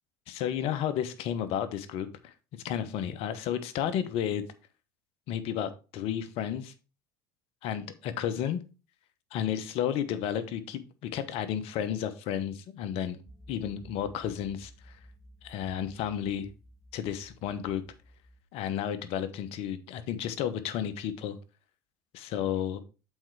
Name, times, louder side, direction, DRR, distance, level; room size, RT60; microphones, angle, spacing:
voice 1, 0.3-4.4 5.3-6.7 7.6-8.6 9.3-13.2 13.5-15.0 15.4-16.5 16.9-17.8 18.5-21.4 22.1-22.8, left 9 dB, 60° left, 1.1 m, -32 dB
sound 1, 13.3-18.4, equal, ahead, 1.8 m, -54 dB
7.8 x 4.5 x 4.7 m
hypercardioid pair, 80°, 11 cm